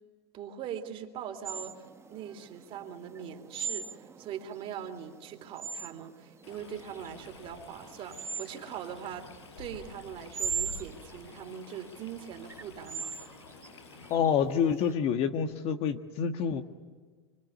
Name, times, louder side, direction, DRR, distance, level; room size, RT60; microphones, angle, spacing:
voice 1, 0.3-1.8 2.1-9.3 9.6-13.1, right 9 dB, 40° right, 6 dB, 3.1 m, -41 dB
sound 1, 1.5-14.9, right 6 dB, 20° right, 1.0 m, -40 dB
Stream, 6.4-14.1, left 4 dB, 80° left, 4.9 m, -49 dB
voice 2, 14.1-16.6, left 7 dB, 45° left, 7 dB, 1.6 m, -27 dB
25.0 x 23.0 x 9.6 m, 1.5 s
hypercardioid pair, 105°, 14 cm